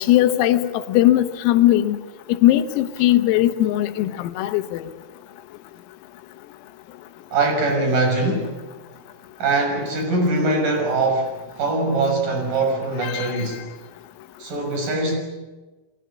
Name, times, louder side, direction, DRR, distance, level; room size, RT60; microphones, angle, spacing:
voice 1, 0.0-2.0 2.4-4.9 13.0-13.3, left 14 dB, 85° left, 10 dB, 3.9 m, -19 dB
voice 2, 7.3-8.5 9.4-13.6 14.4-15.2, right 2 dB, 40° right, 4 dB, 7.4 m, -22 dB
29.0 x 23.0 x 8.3 m, 1.2 s
omnidirectional pair, 6.0 m